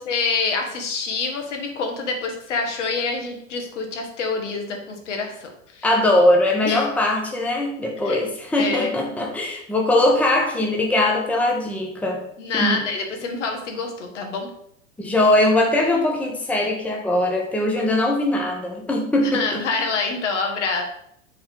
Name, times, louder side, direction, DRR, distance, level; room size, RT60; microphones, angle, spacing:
voice 1, 0.0-5.9 6.6-6.9 8.0-8.2 8.6-8.9 12.4-14.5 19.2-20.8, left 4 dB, 65° left, 3 dB, 1.5 m, -26 dB
voice 2, 5.8-12.2 12.5-12.9 15.0-19.6, left 1 dB, 5° left, -1 dB, 1.0 m, -21 dB
8.2 x 3.9 x 3.5 m, 0.71 s
figure-of-eight pair, 90°, 39 cm